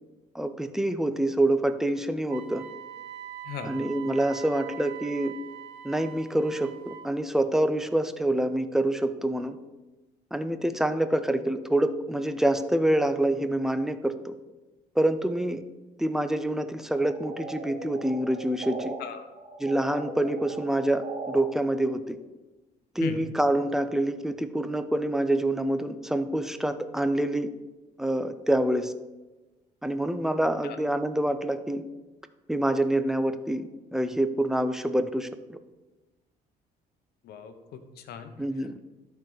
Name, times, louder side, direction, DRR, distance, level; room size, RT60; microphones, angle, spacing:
voice 1, 0.3-2.6 3.7-5.3 5.8-9.6 10.3-14.3 15.0-15.6 16.0-18.9 19.6-22.2 23.0-27.5 28.0-28.9 29.8-31.8 32.5-35.6 38.4-38.7, right 1 dB, 5° right, 10 dB, 0.5 m, -26 dB
Wind instrument woodwind instrument, 2.3-7.1, right 11 dB, 80° right, 0.7 m, -43 dB
sound 1, 16.9-19.0 19.3-21.4, right 3 dB, 35° right, 1.3 m, -39 dB
voice 2, 19.0-19.3 23.0-23.2 30.6-30.8 37.2-38.8, left 8 dB, 70° left, 8 dB, 0.9 m, -39 dB
12.0 x 4.5 x 3.9 m, 1.1 s
cardioid pair, 110°, 17 cm